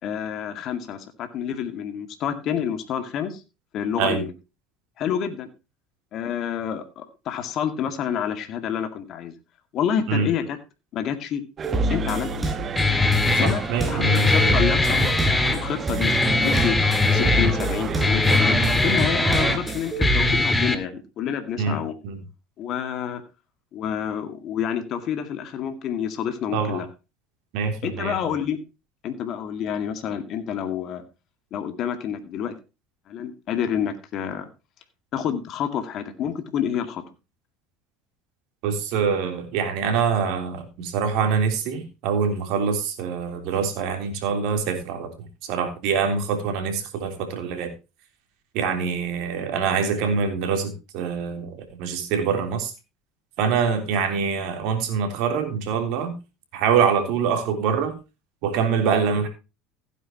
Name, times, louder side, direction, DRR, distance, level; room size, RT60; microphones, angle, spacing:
voice 1, 0.0-3.4 3.7-4.3 5.0-5.5 6.1-9.3 9.7-10.6 10.9-11.4 11.9-12.6 13.4-13.6 13.9-15.0 15.5-16.8 17.0-22.0 22.6-23.2 23.7-26.9 27.8-28.6 29.0-31.0 31.5-32.5 33.1-34.5 35.1-37.0, left 8 dB, 55° left, 7 dB, 2.1 m, -28 dB
sound 1, 11.6-20.3, right 1 dB, 15° right, 4.8 m, -28 dB
sound 2, 11.6-19.6, right 7 dB, 40° right, 1.1 m, -31 dB
Guitar, 12.8-20.8, left 3 dB, 15° left, 2.0 m, -21 dB
voice 2, 13.4-14.3 21.6-21.8 22.0-22.2 26.5-26.8 27.5-28.2 38.6-47.7 48.5-52.7 53.4-56.1 56.5-57.9 58.4-59.3, right 6 dB, 65° right, 5 dB, 3.4 m, -25 dB
15.5 x 9.5 x 3.0 m, 0.28 s
hypercardioid pair, 75°, 0 cm